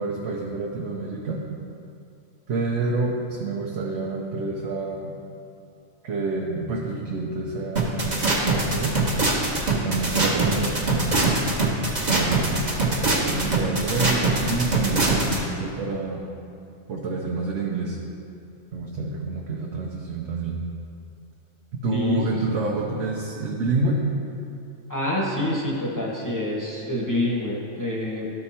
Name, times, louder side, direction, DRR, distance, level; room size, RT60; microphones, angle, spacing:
voice 1, 0.0-1.4 2.5-5.1 6.0-9.0 9.8-11.1 12.1-16.2 16.9-18.0 18.7-20.6 21.7-24.0, right 3 dB, 70° right, -2 dB, 1.1 m, -28 dB
sound 1, 7.8-15.4, right 3 dB, 35° right, 1.2 m, -22 dB
voice 2, 21.9-22.2 24.9-28.3, left 1 dB, 15° left, -4 dB, 1.0 m, -26 dB
12.5 x 4.4 x 4.3 m, 2.5 s
omnidirectional pair, 1.3 m